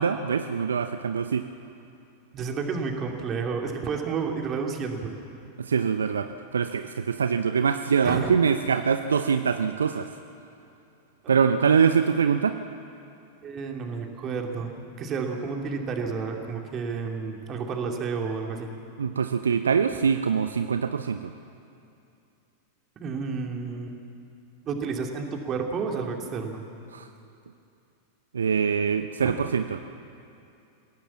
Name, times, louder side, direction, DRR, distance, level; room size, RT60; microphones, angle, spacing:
voice 1, 0.0-1.4 5.6-10.1 11.3-12.6 19.0-21.3 26.9-27.1 28.3-29.8, right 6 dB, 70° right, 9 dB, 0.7 m, -24 dB
voice 2, 2.3-5.1 8.0-8.3 13.4-18.7 23.0-24.0 24.6-26.6 29.2-29.5, right 5 dB, 30° right, 2 dB, 2.8 m, -31 dB
26.5 x 17.0 x 7.3 m, 2.6 s
figure-of-eight pair, 90°, 0 cm